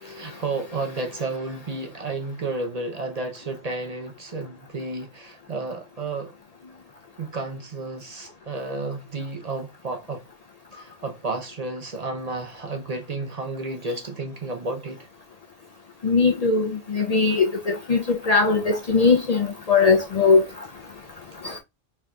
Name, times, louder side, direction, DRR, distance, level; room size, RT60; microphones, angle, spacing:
voice 1, 0.0-6.3 7.2-10.2 10.7-15.1, right 3 dB, 45° right, 0.6 m, -32 dB
voice 2, 16.0-20.4 21.4-21.5, left 4 dB, 50° left, 0.5 m, -20 dB
4.6 x 3.7 x 2.2 m
omnidirectional pair, 1.0 m